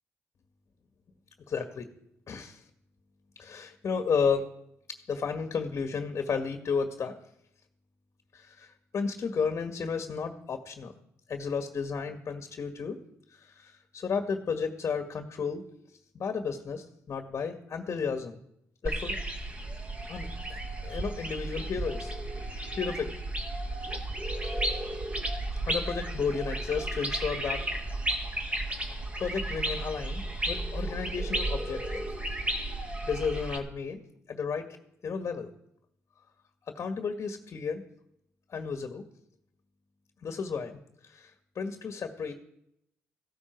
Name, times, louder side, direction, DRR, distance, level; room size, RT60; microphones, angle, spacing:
voice 1, 1.5-1.8 2.3-2.6 3.4-4.4 5.1-7.1 8.3-10.9 11.3-13.0 13.3-15.6 16.1-18.4 18.8-19.1 20.1-22.1 22.8-23.1 24.4-24.7 25.7-27.6 28.7-28.9 29.2-32.1 33.0-34.0 34.3-34.6 35.0-35.5 36.7-37.8 38.5-39.0 40.2-40.7 41.0-42.3, left 5 dB, 50° left, 5 dB, 1.9 m, -33 dB
sound 1, 18.8-33.6, right 1 dB, 20° right, 2.4 m, -33 dB
15.5 x 12.5 x 4.7 m, 0.75 s
supercardioid pair, 65°, 6 cm